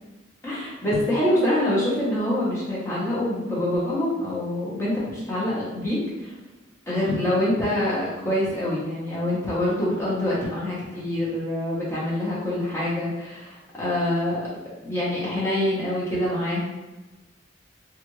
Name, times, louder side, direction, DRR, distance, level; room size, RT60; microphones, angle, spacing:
voice 1, 0.4-6.3 6.9-14.4 14.8-16.6, left 1 dB, 15° left, -8 dB, 1.1 m, -25 dB
3.3 x 2.5 x 3.1 m, 1.1 s
head